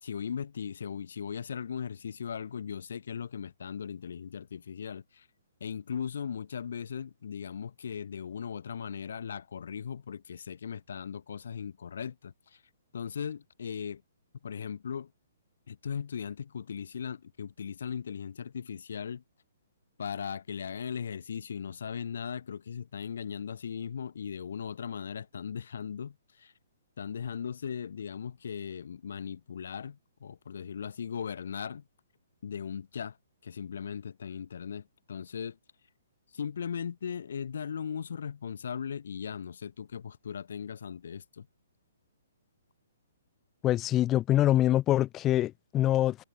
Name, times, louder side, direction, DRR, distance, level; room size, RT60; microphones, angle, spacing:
voice 1, 0.0-5.3 5.6-12.6 12.9-14.0 14.4-15.1 15.7-19.2 20.0-26.5 27.0-31.8 32.4-33.2 33.4-35.6 36.3-41.5, left 7 dB, 65° left, 4.3 m, -38 dB
voice 2, 43.6-46.2, left 13 dB, 20° left, 2.0 m, -25 dB
hypercardioid pair, 130°, 0 cm